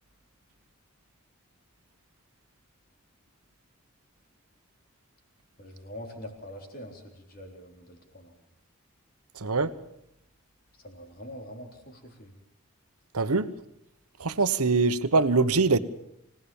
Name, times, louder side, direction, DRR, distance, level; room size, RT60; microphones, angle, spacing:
voice 1, 5.6-8.4 10.8-12.3, equal, 40° left, 3.8 m, -44 dB
voice 2, 9.3-9.8 13.1-13.5 14.2-15.8, right 3 dB, 85° right, 1.1 m, -23 dB
25.0 x 17.5 x 7.1 m
head